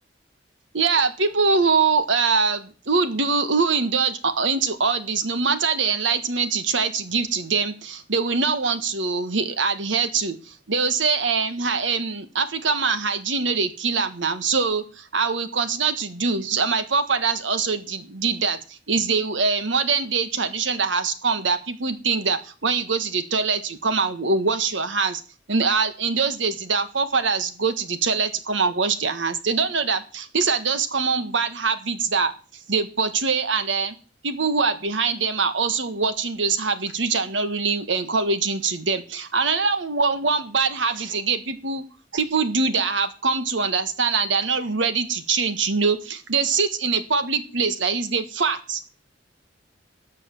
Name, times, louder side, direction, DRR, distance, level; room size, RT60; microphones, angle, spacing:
voice 1, 0.7-25.2 25.5-32.3 32.7-33.9 34.2-41.8 42.1-48.8, right 4 dB, 90° right, 11 dB, 1.6 m, -23 dB
13.0 x 8.4 x 7.1 m, 0.36 s
head